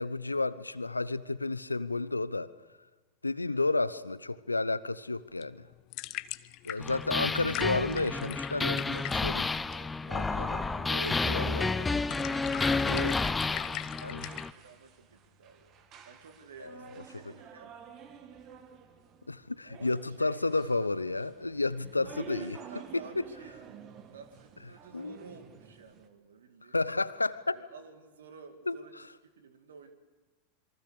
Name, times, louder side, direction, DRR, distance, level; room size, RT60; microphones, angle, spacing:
voice 1, 0.0-2.5 3.2-5.6 6.6-9.5 10.1-10.6 10.9-11.9 12.8-13.2 14.0-14.3 16.6-17.0 19.3-22.6 22.9-23.2 24.9-25.2 26.7-27.6 28.7-28.8, left 3 dB, 85° left, 17 dB, 0.8 m, -32 dB
sound 1, 5.2-14.5, left 18 dB, 45° left, 0.8 m, -42 dB
sound 2, 6.8-14.5, left 3 dB, 10° left, 0.7 m, -30 dB
sound 3, 8.6-26.1, right 7 dB, 35° right, 2.2 m, -50 dB
voice 2, 11.5-15.7 16.0-17.7 19.6-20.6 22.2-26.8 27.5-29.9, right 5 dB, 70° right, 8 dB, 2.5 m, -53 dB
27.5 x 23.5 x 6.7 m, 1.3 s
figure-of-eight pair, 90°, 0 cm